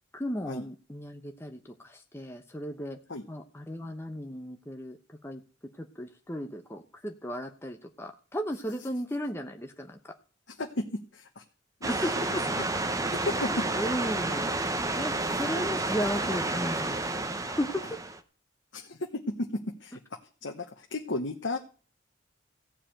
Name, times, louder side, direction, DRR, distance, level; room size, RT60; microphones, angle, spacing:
voice 1, 0.1-3.0 3.3-5.4 5.8-10.0 11.9-12.7 13.7-14.5 15.0-17.1 17.4-18.0, equal, 15° left, 4 dB, 0.8 m, -35 dB
voice 2, 10.5-11.4 11.8-11.9 12.6-12.7 13.2-13.6 18.7-20.0 20.4-21.6, left 2 dB, 70° left, 2 dB, 1.1 m, -34 dB
sound 1, 11.8-18.2, right 2 dB, 15° right, 0.8 m, -30 dB
15.0 x 5.0 x 8.8 m, 0.40 s
head